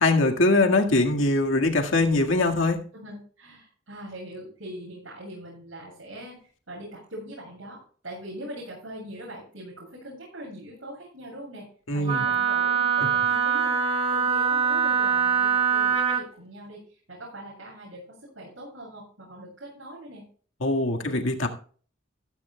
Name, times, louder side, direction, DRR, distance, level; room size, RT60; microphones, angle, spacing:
voice 1, 0.0-2.8 11.9-12.3 20.6-21.5, left 2 dB, 85° left, 3 dB, 1.8 m, -22 dB
voice 2, 2.9-11.7 11.9-20.2, right 1 dB, 80° right, -5 dB, 7.5 m, -42 dB
Wind instrument woodwind instrument, 12.1-16.2, right 7 dB, 30° right, 1.8 m, -23 dB
14.5 x 14.5 x 2.3 m, 0.43 s
head